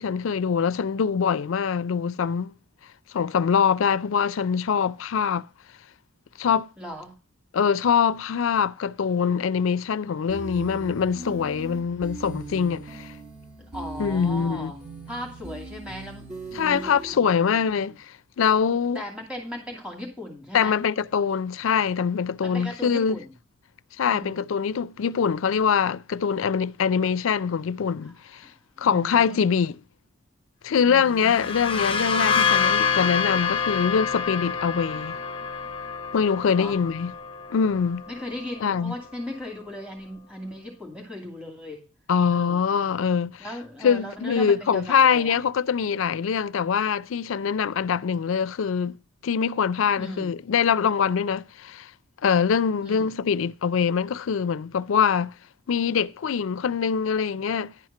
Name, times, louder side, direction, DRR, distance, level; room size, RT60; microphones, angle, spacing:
voice 1, 0.0-2.5 3.1-5.5 6.4-6.7 7.5-13.1 14.0-14.7 16.5-18.0 18.4-19.0 20.5-23.2 24.0-28.4 28.8-29.7 30.6-35.2 36.1-37.1 37.5-38.0 38.6-38.9 42.1-43.4 43.8-49.0 49.2-51.9 52.2-55.3 55.7-57.7, left 6 dB, 70° left, 0.4 m, -23 dB
voice 2, 6.8-7.1 13.6-14.8 15.1-18.0 18.9-20.8 22.4-23.3 24.1-24.4 28.0-28.1 28.4-29.5 30.8-31.5 36.5-36.8 38.1-41.8 42.3-42.6 43.4-45.4 49.9-50.3 52.8-53.1, left 1 dB, 5° right, 2.5 m, -38 dB
sound 1, 10.3-17.1, right 2 dB, 40° right, 2.9 m, -39 dB
sound 2, 31.1-38.7, left 6 dB, 25° left, 0.6 m, -27 dB
11.0 x 4.4 x 5.8 m
head